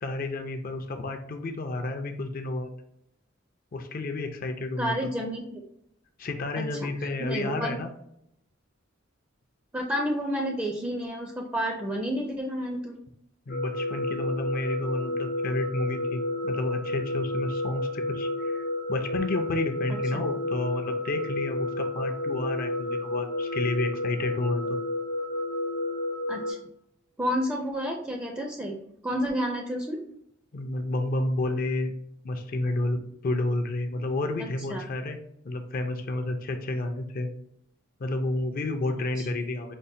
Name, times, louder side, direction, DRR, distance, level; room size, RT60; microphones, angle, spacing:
voice 1, 0.0-2.7 3.7-5.1 6.2-7.9 13.5-24.8 30.5-31.9 32.2-35.2 35.4-37.3 38.0-39.7, left 2 dB, 45° left, 5 dB, 0.4 m, -31 dB
voice 2, 4.8-5.6 6.6-6.9 7.2-7.8 9.7-13.0 19.9-20.0 26.3-26.6 27.2-28.8 29.0-30.0 34.7-34.8 39.2-39.3, equal, 10° right, 0 dB, 0.4 m, -30 dB
sound 1, 13.5-26.5, left 2 dB, 80° left, 0.8 m, -31 dB
5.2 x 2.1 x 2.6 m, 0.76 s
head